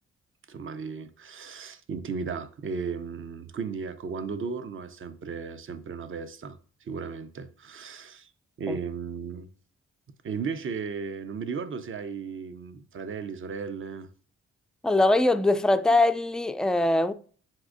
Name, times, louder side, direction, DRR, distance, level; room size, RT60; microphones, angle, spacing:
voice 1, 0.5-8.3 8.6-9.5 10.2-14.1, right 5 dB, 40° right, 0.6 m, -35 dB
voice 2, 14.8-17.1, left 2 dB, ahead, 0.3 m, -22 dB
7.4 x 2.6 x 2.5 m
hypercardioid pair, 45°, 30 cm